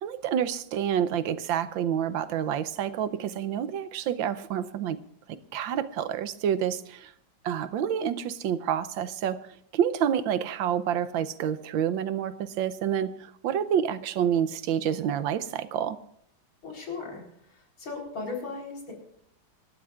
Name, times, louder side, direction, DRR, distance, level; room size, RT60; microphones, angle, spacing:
voice 1, 0.0-5.0 5.5-7.1 7.4-9.4 9.7-16.0, right 9 dB, 80° right, 13 dB, 1.5 m, -28 dB
voice 2, 16.6-17.2 17.5-18.9, left 4 dB, 80° left, 0 dB, 4.7 m, -37 dB
27.0 x 12.5 x 2.5 m, 0.70 s
omnidirectional pair, 2.1 m